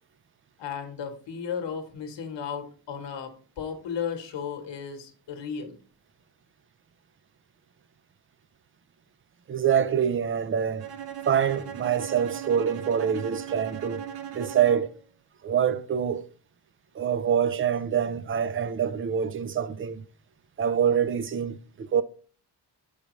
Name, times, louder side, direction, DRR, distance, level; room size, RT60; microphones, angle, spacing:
voice 1, 0.6-5.8, left 7 dB, 85° left, 1.1 m, -35 dB
voice 2, 9.5-10.9 11.3-14.0 14.3-14.9 15.4-16.3 17.0-20.0 20.6-22.0, right 8 dB, 30° right, 0.4 m, -25 dB
Bowed string instrument, 10.8-15.1, right 10 dB, 60° right, 0.7 m, -38 dB
6.6 x 4.8 x 3.0 m
wide cardioid pair, 110°, 43 cm